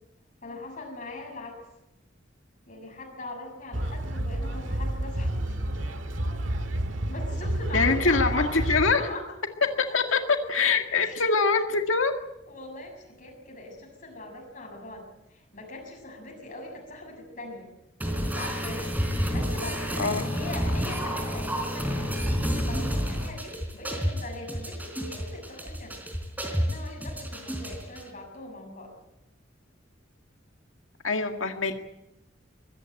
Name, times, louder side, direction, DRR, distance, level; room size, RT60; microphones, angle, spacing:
voice 1, 0.4-1.6 2.7-5.6 7.1-9.2 9.9-10.2 10.5-10.6 11.0-11.3 12.5-17.7 18.0-18.9 19.3-26.0 26.6-28.9, left 2 dB, 45° left, 0 dB, 7.0 m, -41 dB
sound 1, 3.7-8.9, right 1 dB, 70° right, 1.9 m, -30 dB
voice 2, 7.7-9.0 9.9-10.2 10.5-12.1 20.0-20.2 31.0-31.8, left 4 dB, 80° left, 5 dB, 2.0 m, -24 dB
sound 2, 18.0-28.0, equal, 10° right, 3.9 m, -30 dB
23.5 x 15.0 x 9.0 m, 0.89 s
head